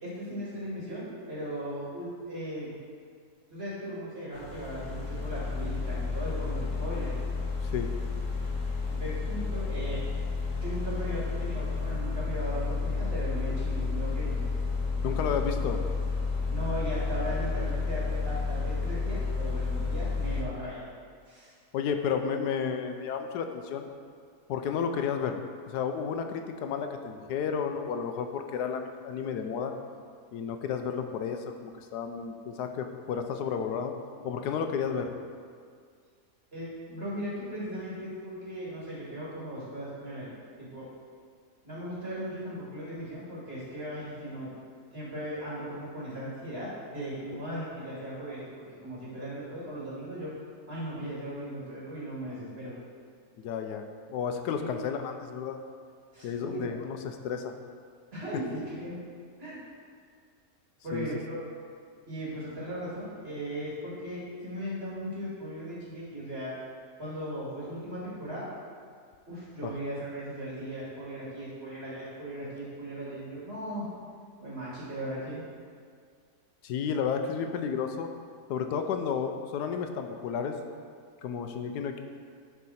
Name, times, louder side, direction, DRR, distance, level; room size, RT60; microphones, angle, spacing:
voice 1, 0.0-2.7 3.5-7.1 8.9-10.0 10.5-14.4 16.5-20.8 21.2-21.5 36.5-40.9 41.6-44.5 44.9-50.3 50.7-52.7 54.6-54.7 56.1-56.9 58.1-59.0 59.4-59.6 60.8-61.4 62.1-66.5 67.0-68.5 69.3-73.9 74.4-75.4, equal, 40° right, -8 dB, 2.6 m, -37 dB
sound 1, 4.3-20.4, left 4 dB, 55° left, 1.4 m, -31 dB
voice 2, 15.0-15.8 21.7-23.9 24.5-25.4 25.7-29.7 30.3-33.9 34.2-35.1 53.4-53.8 54.1-55.6 56.2-57.5 60.9-61.1 69.6-69.7 76.6-78.1 78.5-80.5 81.2-82.0, left 7 dB, 85° left, 6 dB, 1.2 m, -32 dB
11.5 x 4.6 x 4.2 m, 2.1 s
omnidirectional pair, 1.7 m